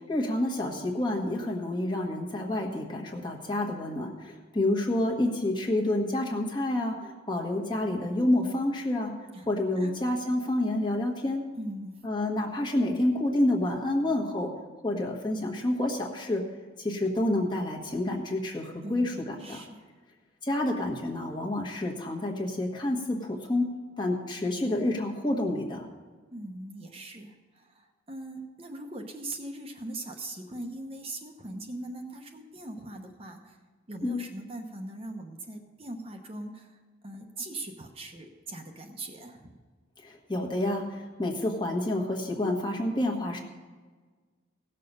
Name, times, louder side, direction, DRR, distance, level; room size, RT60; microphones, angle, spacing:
voice 1, 0.0-9.1 9.5-11.4 12.0-14.5 14.8-16.4 16.8-19.6 20.4-23.7 24.0-25.9 34.0-34.2 40.0-43.4, left 1 dB, 25° left, 0 dB, 1.3 m, -28 dB
voice 2, 11.5-12.0 18.8-19.9 26.3-33.6 33.9-39.5, right 2 dB, 30° right, 3 dB, 0.9 m, -41 dB
17.0 x 6.7 x 5.4 m, 1.4 s
head